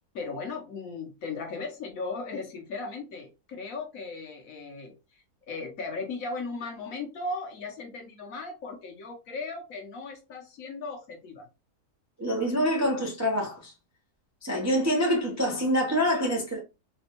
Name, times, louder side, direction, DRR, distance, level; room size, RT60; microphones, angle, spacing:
voice 1, 0.1-11.5, left 3 dB, 60° left, 1.2 m, -37 dB
voice 2, 12.2-13.7 14.4-16.6, equal, 20° right, 0.4 m, -26 dB
4.2 x 2.3 x 2.9 m
omnidirectional pair, 1.7 m